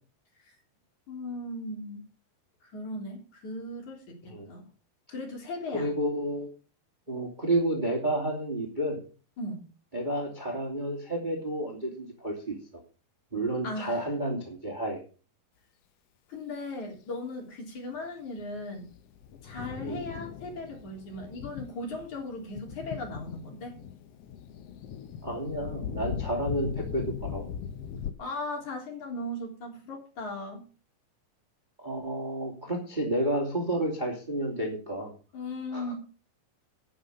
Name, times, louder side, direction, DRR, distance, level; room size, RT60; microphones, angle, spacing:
voice 1, 1.1-2.0 2.6-4.6 5.1-5.9 9.4-9.6 13.6-14.1 16.3-18.9 19.4-23.7 28.2-30.6 35.3-36.0, left 2 dB, 55° left, 1 dB, 4.9 m, -37 dB
voice 2, 5.7-6.5 7.1-9.0 9.9-12.6 13.3-15.0 19.8-20.0 25.2-27.5 31.8-35.1 35.7-35.9, right 1 dB, 15° right, 1 dB, 2.4 m, -30 dB
Thunder, 18.4-28.1, left 7 dB, 90° left, 1.3 m, -39 dB
10.0 x 9.3 x 6.8 m, 0.37 s
omnidirectional pair, 4.2 m